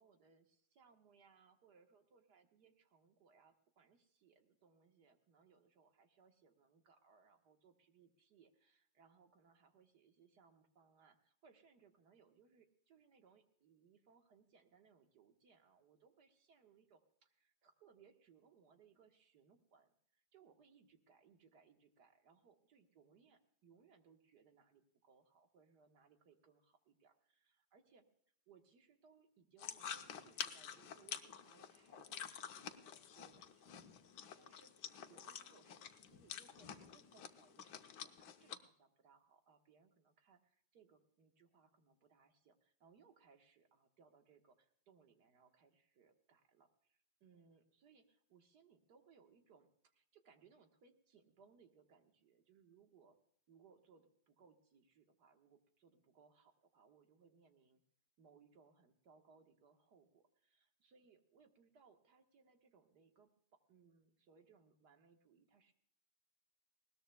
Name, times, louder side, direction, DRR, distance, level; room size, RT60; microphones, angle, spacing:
voice 1, 0.0-28.1 28.5-34.7 35.1-53.2 53.5-57.8 58.2-65.7, right 5 dB, 75° right, 5 dB, 1.9 m, -69 dB
sound 1, 29.6-38.6, left 8 dB, 85° left, 1.5 m, -49 dB
20.0 x 18.5 x 2.2 m, 0.64 s
omnidirectional pair, 1.8 m